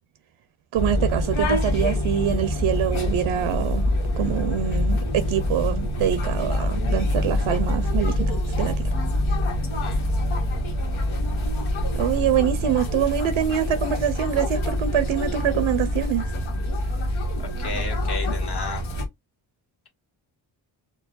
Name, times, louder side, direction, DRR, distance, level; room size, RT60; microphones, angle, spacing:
sound 1, 0.7-19.1, left 1 dB, 85° left, 1.3 m, -25 dB
voice 1, 0.7-3.9 4.2-8.3 8.6-8.7 12.0-16.3, right 10 dB, 85° right, 0.6 m, -25 dB
voice 2, 17.4-18.9, left 3 dB, 55° left, 1.7 m, -33 dB
4.6 x 2.2 x 2.5 m
cardioid pair, 85°, 47 cm